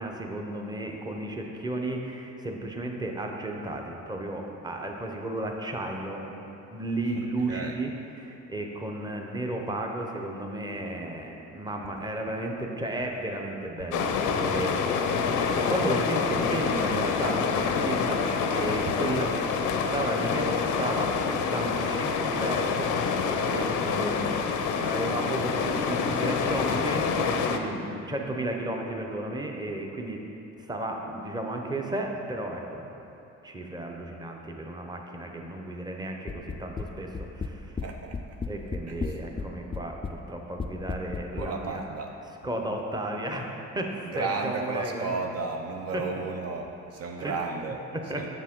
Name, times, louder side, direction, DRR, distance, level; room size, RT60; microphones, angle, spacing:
voice 1, 0.0-6.4 6.7-23.1 23.5-24.4 24.8-30.2 30.6-33.0 33.4-37.7 38.5-41.8 42.4-45.1 45.9-46.0 47.2-47.4 47.9-48.3, right 1 dB, 15° right, 1 dB, 0.8 m, -34 dB
sound 1, 13.9-27.6, left 5 dB, 90° left, 0.5 m, -27 dB
sound 2, 36.3-36.9 37.2-37.9 38.1-39.5 39.7-40.2 40.6-41.5, left 4 dB, 20° left, 0.3 m, -33 dB
voice 2, 37.8-38.4 38.9-39.2 41.4-42.2 44.1-47.8 48.1-48.3, right 4 dB, 55° right, 3 dB, 0.5 m, -33 dB
7.3 x 6.7 x 3.7 m, 2.9 s
cardioid pair, 90°, 30 cm